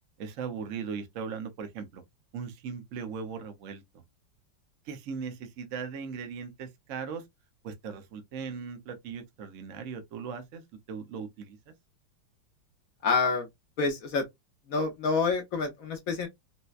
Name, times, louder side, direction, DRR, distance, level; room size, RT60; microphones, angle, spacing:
voice 1, 0.2-2.0 2.3-3.8 4.9-7.2 7.6-10.6 10.9-11.7, right 6 dB, 60° right, 0.8 m, -38 dB
voice 2, 13.0-13.5 13.8-14.3 14.7-16.3, left 4 dB, 65° left, 0.9 m, -27 dB
4.1 x 2.2 x 2.3 m
omnidirectional pair, 2.1 m